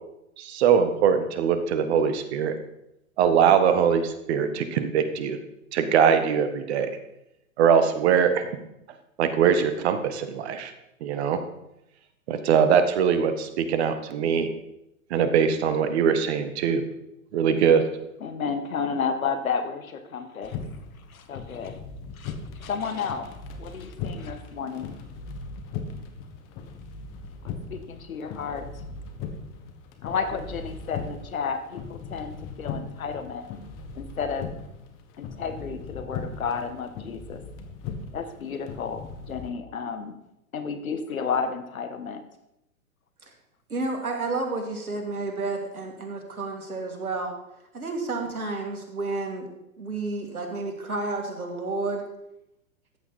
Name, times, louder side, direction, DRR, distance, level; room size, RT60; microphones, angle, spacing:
voice 1, 0.4-2.5 3.2-5.4 5.7-6.9 7.6-8.5 9.2-10.7 11.0-11.4 12.3-14.5 15.1-16.8 17.3-17.8, right 7 dB, 50° right, 9 dB, 1.5 m, -22 dB
voice 2, 18.2-20.6 21.1-21.8 22.2-23.3 23.6-24.9 27.4-28.7 30.0-33.5 33.9-34.5 35.2-37.4 38.1-40.2 40.5-42.2, left 5 dB, 75° left, 9 dB, 1.6 m, -32 dB
sound 1, 20.4-39.5, left 5 dB, 30° left, 1.4 m, -39 dB
voice 3, 43.7-47.3 47.7-49.5 49.8-52.0, right 3 dB, 85° right, 3 dB, 2.7 m, -31 dB
14.0 x 8.8 x 4.2 m, 0.85 s
hypercardioid pair, 120°, 42 cm